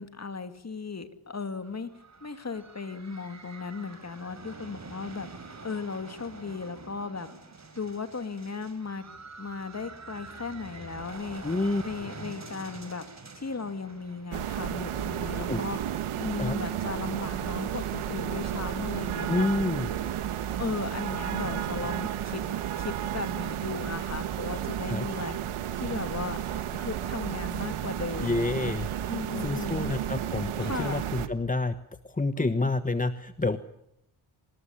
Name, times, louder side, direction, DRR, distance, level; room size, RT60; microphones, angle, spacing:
voice 1, 0.0-1.9 2.2-5.3 5.6-7.3 7.7-9.0 9.4-11.4 11.8-13.0 13.4-15.8 16.1-19.5 20.6-22.4 22.8-25.4 25.7-26.4 26.7-28.7 29.1-29.9 30.6-31.1 32.4-32.7, left 4 dB, 30° left, 9 dB, 2.6 m, -36 dB
sound 1, 1.6-18.2, right 3 dB, 35° right, 5.7 m, -47 dB
voice 2, 11.4-11.8 15.5-15.6 16.4-16.6 19.3-19.9 24.9-25.1 28.2-28.9 29.4-31.8 32.0-33.6, left 3 dB, 15° left, 11 dB, 1.2 m, -28 dB
sound 2, 14.3-31.3, right 10 dB, 85° right, 1.8 m, -32 dB
26.0 x 20.0 x 10.0 m, 0.78 s
cardioid pair, 80°, 48 cm